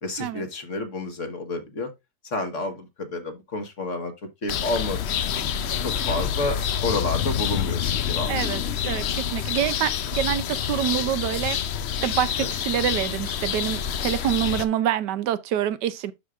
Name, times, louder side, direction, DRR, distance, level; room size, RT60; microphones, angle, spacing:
voice 1, 0.0-1.9 2.2-4.1 4.4-5.5 5.8-8.3 12.4-12.5, left 2 dB, 50° left, 1.6 m, -30 dB
sound 1, 4.5-14.6, left 9 dB, 70° left, 0.6 m, -27 dB
voice 2, 8.3-11.6 12.0-16.1, right 11 dB, 80° right, 1.3 m, -26 dB
12.0 x 4.8 x 2.4 m
omnidirectional pair, 1.8 m